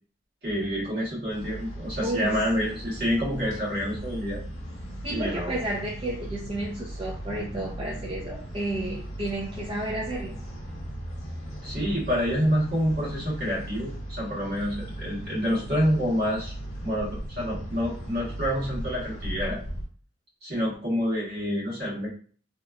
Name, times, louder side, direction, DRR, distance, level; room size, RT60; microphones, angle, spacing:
voice 1, 0.4-4.4 5.1-5.6 11.4-16.5 16.8-19.6 20.4-22.1, equal, 50° right, -6 dB, 1.3 m, -28 dB
sound 1, 1.3-19.8, right 1 dB, 60° left, 1.0 m, -38 dB
voice 2, 2.0-2.7 5.0-10.4, right 1 dB, 25° right, -4 dB, 0.4 m, -32 dB
2.8 x 2.2 x 2.3 m, 0.43 s
head